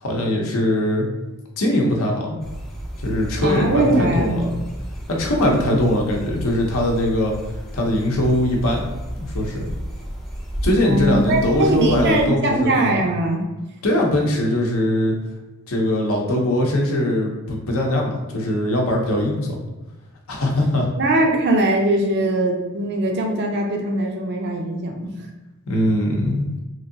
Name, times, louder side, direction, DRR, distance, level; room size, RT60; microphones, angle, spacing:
voice 1, 0.0-1.1 1.6-2.4 3.0-4.6 5.1-7.3 7.7-8.8 9.1-9.7 10.6-13.0 13.8-15.1 15.7-19.4 20.3-20.9 25.7-26.5, left 1 dB, 70° left, 0 dB, 0.7 m, -21 dB
sound 1, 2.4-12.3, equal, ahead, 0.4 m, -32 dB
voice 2, 3.4-4.4 10.8-13.4 21.0-25.3, right 2 dB, 50° right, 2 dB, 0.5 m, -21 dB
3.1 x 2.6 x 2.6 m, 1.1 s
head